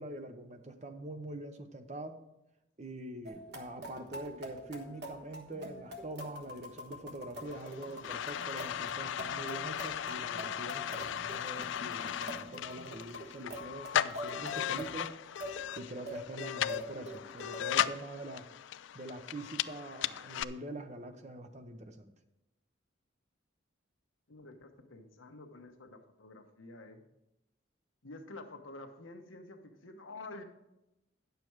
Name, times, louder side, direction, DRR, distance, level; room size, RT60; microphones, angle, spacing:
voice 1, 0.0-2.2 2.8-15.1 15.7-18.5 18.9-22.1, right 1 dB, 35° right, 8 dB, 0.7 m, -44 dB
sound 1, 3.2-17.6, equal, 55° right, 1.3 m, -45 dB
sound 2, 7.5-20.4, left 10 dB, 70° left, 0.3 m, -37 dB
voice 2, 24.3-27.0 28.0-30.4, left 2 dB, 85° left, 5 dB, 1.1 m, -49 dB
9.7 x 6.9 x 4.6 m, 0.91 s
head